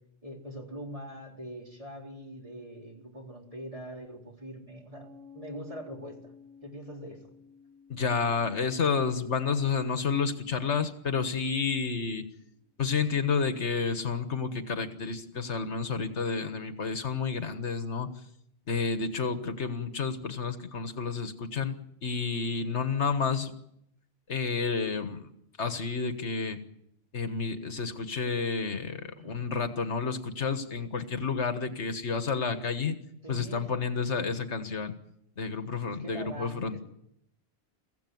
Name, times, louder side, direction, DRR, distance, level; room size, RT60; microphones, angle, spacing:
voice 1, 0.2-5.1 5.3-6.3 6.6-7.2 29.2-29.4 33.2-33.7 35.8-36.8, equal, 30° right, 0 dB, 4.2 m, -43 dB
Piano, 4.9-12.1, left 5 dB, 65° right, 5.7 m, -56 dB
voice 2, 7.9-12.2 12.8-18.1 18.7-21.7 22.0-23.5 24.3-25.3 25.6-26.6 27.1-32.9 33.3-34.9 35.4-36.8, left 5 dB, 80° left, 9 dB, 1.8 m, -30 dB
23.5 x 16.0 x 9.5 m, 0.78 s
omnidirectional pair, 1.2 m